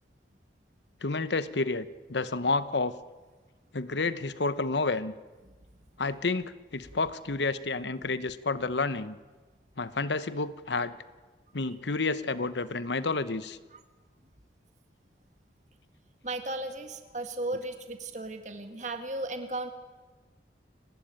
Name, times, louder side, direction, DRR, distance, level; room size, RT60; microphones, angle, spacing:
voice 1, 1.0-2.9 3.7-5.1 6.0-9.2 9.8-10.9 11.5-13.6, left 3 dB, 75° left, 14 dB, 1.0 m, -30 dB
voice 2, 16.2-19.7, right 2 dB, 40° right, 7 dB, 1.9 m, -35 dB
29.0 x 13.0 x 8.9 m, 1.3 s
head